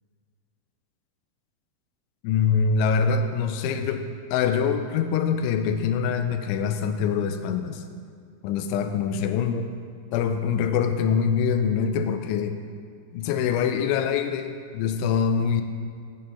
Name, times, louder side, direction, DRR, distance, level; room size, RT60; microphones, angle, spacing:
voice 1, 2.2-7.8 8.4-9.7 10.1-12.6 13.1-15.6, left 6 dB, 85° left, 8 dB, 2.9 m, -24 dB
12.5 x 4.4 x 5.5 m, 2.2 s
omnidirectional pair, 5.5 m